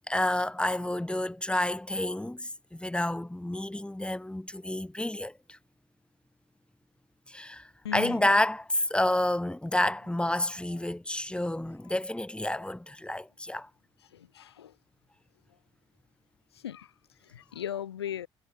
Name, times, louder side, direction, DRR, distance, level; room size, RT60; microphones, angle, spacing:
voice 1, 0.1-5.6 7.3-13.7, left 1 dB, 10° left, 3.6 m, -29 dB
voice 2, 7.8-8.2 14.1-14.7 16.5-16.9 17.2-18.3, left 10 dB, 90° left, 0.7 m, -37 dB
hypercardioid pair, 55°, 13 cm